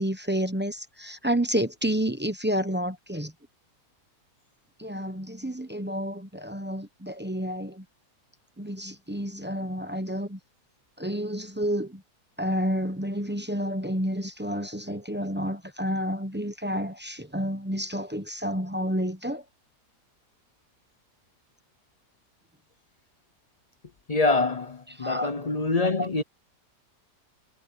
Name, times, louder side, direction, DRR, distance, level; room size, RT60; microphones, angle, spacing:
voice 1, 0.0-3.3 4.8-7.8 8.6-10.4 11.0-12.0 12.4-19.4 25.0-25.3 25.8-26.2, equal, 10° right, 0.7 m, -30 dB
voice 2, 24.1-26.2, left 3 dB, 45° left, 0.5 m, -25 dB
omnidirectional pair, 1.8 m